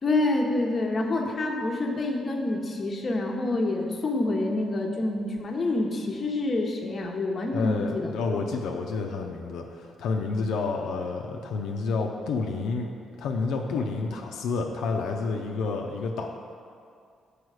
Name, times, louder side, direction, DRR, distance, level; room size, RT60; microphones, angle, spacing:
voice 1, 0.0-8.1, left 2 dB, 35° left, 1 dB, 0.8 m, -27 dB
voice 2, 7.5-12.9 13.2-16.3, left 4 dB, 80° left, 1 dB, 0.5 m, -29 dB
6.3 x 5.0 x 4.8 m, 2.3 s
cardioid pair, 90°, 0 cm